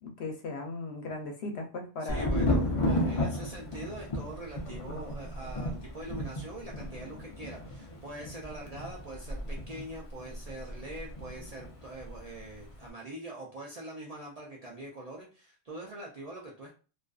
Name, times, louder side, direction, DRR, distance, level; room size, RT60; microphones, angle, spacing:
voice 1, 0.0-2.3 3.2-3.3, left 2 dB, 70° left, 2 dB, 0.8 m, -37 dB
voice 2, 2.0-16.7, right 1 dB, 50° right, -3 dB, 0.5 m, -43 dB
Thunder, 2.1-11.7 12.0-12.7, left 1 dB, 50° left, 0.4 m, -33 dB
2.5 x 2.3 x 2.3 m, 0.35 s
omnidirectional pair, 1.2 m